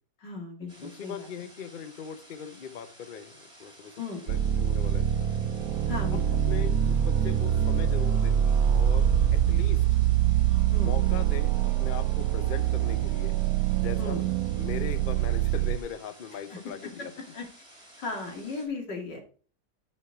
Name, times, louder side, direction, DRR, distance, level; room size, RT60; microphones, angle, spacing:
voice 1, 0.2-1.3 4.0-4.2 5.9-6.2 10.7-10.9 14.0-14.2 16.5-16.6 17.3-17.4 18.0-19.2, left 3 dB, 85° left, 2 dB, 3.0 m, -36 dB
sound 1, 0.7-18.7, right 1 dB, 15° right, 3.2 m, -53 dB
voice 2, 0.8-3.9 4.2-5.3 6.1-8.4 8.7-9.8 10.8-13.3 13.7-14.2 14.5-17.1, left 7 dB, 45° left, 11 dB, 0.6 m, -40 dB
sound 2, 4.3-15.8, right 10 dB, 70° right, 1.0 m, -24 dB
9.7 x 5.7 x 4.7 m, 0.40 s
omnidirectional pair, 1.8 m